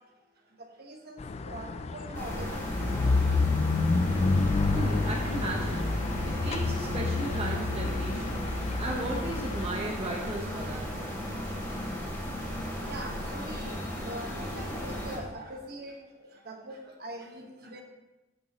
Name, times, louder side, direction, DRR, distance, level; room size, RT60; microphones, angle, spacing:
voice 1, 0.8-1.2 1.5-3.2 12.9-15.9 16.4-17.8, right 1 dB, 55° right, 2 dB, 1.3 m, -42 dB
sound 1, 1.2-9.7, left 3 dB, 35° left, 0.3 m, -29 dB
sound 2, 2.1-15.2, equal, 10° left, 3.0 m, -35 dB
Bowed string instrument, 3.8-9.1, right 5 dB, 75° right, 0.4 m, -43 dB
voice 2, 4.7-5.9 6.4-8.5 8.8-10.9, right 1 dB, 30° right, -1 dB, 1.0 m, -35 dB
14.5 x 5.9 x 3.0 m, 1.1 s
head